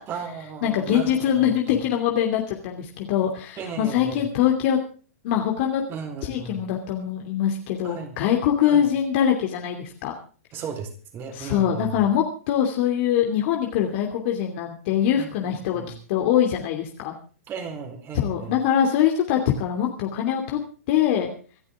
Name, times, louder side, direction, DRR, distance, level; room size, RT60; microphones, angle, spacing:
voice 1, 0.1-1.8 3.6-4.3 5.9-6.6 7.8-8.2 8.6-8.8 10.5-12.0 15.2-15.9 17.5-18.6, right 6 dB, 30° right, 6 dB, 4.2 m, -36 dB
voice 2, 0.6-4.8 5.2-5.8 6.2-10.1 11.3-15.8 16.1-17.1 18.1-20.6 20.9-21.3, left 9 dB, 50° left, 2 dB, 2.8 m, -23 dB
26.0 x 11.5 x 3.7 m, 0.39 s
hypercardioid pair, 125°, 8 cm